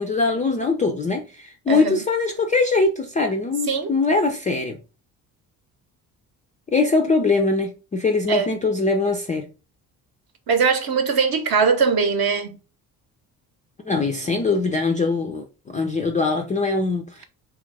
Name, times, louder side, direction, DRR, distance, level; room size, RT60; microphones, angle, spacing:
voice 1, 0.0-4.8 6.7-9.5 13.8-17.2, left 3 dB, 20° left, 0.3 m, -22 dB
voice 2, 1.7-2.0 3.7-3.9 8.3-8.5 10.5-12.6, right 5 dB, 50° right, 0.8 m, -21 dB
3.1 x 2.4 x 3.3 m
hypercardioid pair, 45°, 48 cm